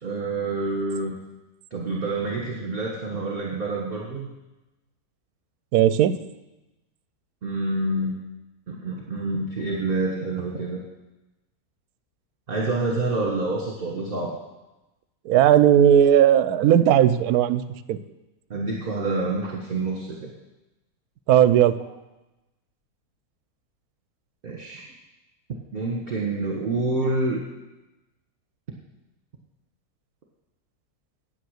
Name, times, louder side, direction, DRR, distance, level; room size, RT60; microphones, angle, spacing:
voice 1, 0.0-1.2 1.7-4.3 7.4-8.2 8.7-10.8 12.5-14.4 18.5-20.3 24.4-24.9 25.7-27.4, right 2 dB, 40° right, -2 dB, 1.4 m, -27 dB
voice 2, 5.7-6.1 15.2-17.6 17.9-18.0 21.3-21.8, right 10 dB, 75° right, 13 dB, 1.0 m, -16 dB
9.3 x 8.8 x 6.5 m, 1.0 s
omnidirectional pair, 1.7 m